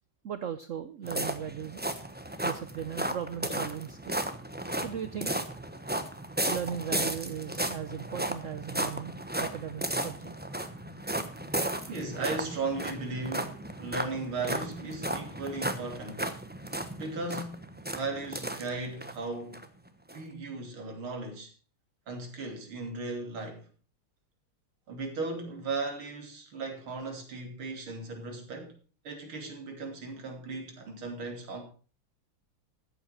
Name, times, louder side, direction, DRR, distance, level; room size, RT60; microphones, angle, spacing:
voice 1, 0.2-1.8 2.4-4.2 4.7-5.4 6.5-9.1 9.4-10.3, right 9 dB, 65° right, 0.7 m, -37 dB
sound 1, 1.0-19.1 19.5-19.6 20.1-20.2, right 1 dB, 10° right, 0.5 m, -35 dB
voice 2, 11.9-16.3 17.0-19.7 20.1-21.5 22.1-23.7 24.9-28.8 29.0-31.6, right 3 dB, 85° right, 3.8 m, -36 dB
14.0 x 8.2 x 5.7 m
omnidirectional pair, 2.2 m